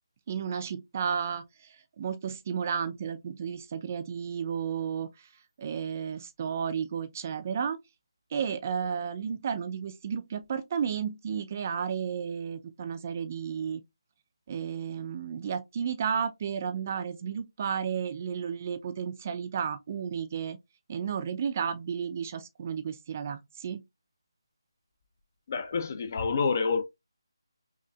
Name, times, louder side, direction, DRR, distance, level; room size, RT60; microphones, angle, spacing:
voice 1, 0.3-5.3 5.6-7.8 8.3-13.8 14.5-20.6 20.9-23.8, right 7 dB, 30° right, 0.4 m, -33 dB
voice 2, 25.5-26.8, left 5 dB, 35° left, 0.5 m, -28 dB
5.6 x 2.4 x 2.3 m
figure-of-eight pair, 165°, 3 cm